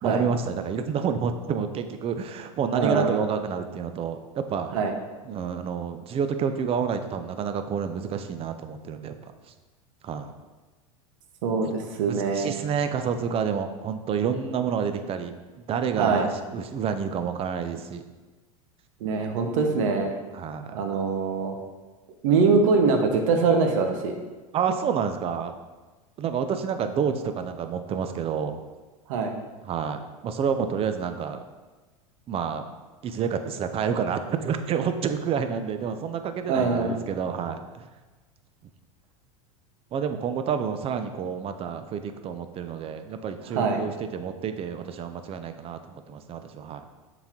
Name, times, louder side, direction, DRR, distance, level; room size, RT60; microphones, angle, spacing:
voice 1, 0.0-4.7 5.3-9.1 10.0-10.3 11.6-11.7 12.1-15.3 15.7-18.0 20.3-20.7 24.5-25.6 26.2-28.6 29.7-31.4 32.3-32.6 33.0-37.9 39.9-46.8, right 7 dB, 35° right, 8 dB, 0.6 m, -29 dB
voice 2, 2.7-3.2 4.7-4.9 11.4-12.6 16.0-16.3 19.0-20.1 20.7-21.6 22.2-24.1 29.1-29.3 36.5-37.0 43.5-43.8, right 4 dB, 65° right, 4 dB, 1.0 m, -23 dB
7.0 x 4.1 x 3.7 m, 1.2 s
hypercardioid pair, 95°, 18 cm